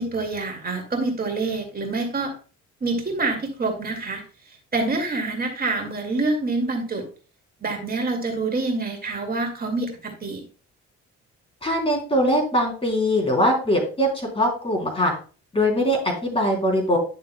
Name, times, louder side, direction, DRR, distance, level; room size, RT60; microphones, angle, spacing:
voice 1, 0.0-2.3 2.8-7.0 7.6-10.4, right 3 dB, 30° right, 2 dB, 2.2 m, -26 dB
voice 2, 11.6-15.1 15.5-17.0, equal, 20° left, 0 dB, 3.3 m, -22 dB
11.0 x 6.7 x 2.2 m, 0.38 s
cardioid pair, 90°, 30 cm